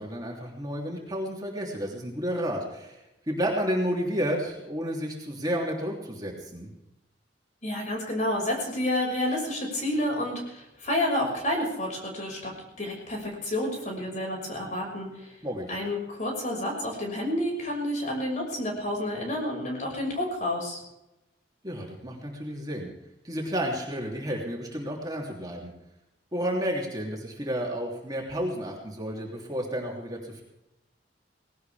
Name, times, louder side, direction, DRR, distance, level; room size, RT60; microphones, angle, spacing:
voice 1, 0.0-6.7 15.4-15.8 21.6-22.9 23.2-25.7 26.3-30.4, equal, 20° right, -2 dB, 3.3 m, -31 dB
voice 2, 7.6-15.3 15.7-20.8, left 1 dB, 40° left, 0 dB, 6.1 m, -30 dB
19.5 x 18.0 x 3.6 m, 0.92 s
head